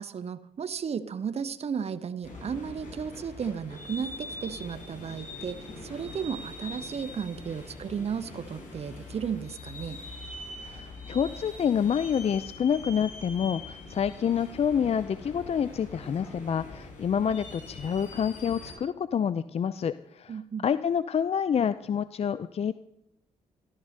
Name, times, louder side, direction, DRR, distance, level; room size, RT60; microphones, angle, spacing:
voice 1, 0.0-10.0 20.3-20.7, right 7 dB, 50° right, 12 dB, 1.0 m, -34 dB
sound 1, 2.2-18.7, left 2 dB, 70° left, 6.3 m, -43 dB
voice 2, 10.6-22.7, left 8 dB, 50° left, 14 dB, 0.6 m, -28 dB
13.5 x 12.5 x 6.6 m, 0.83 s
supercardioid pair, 60°, 13 cm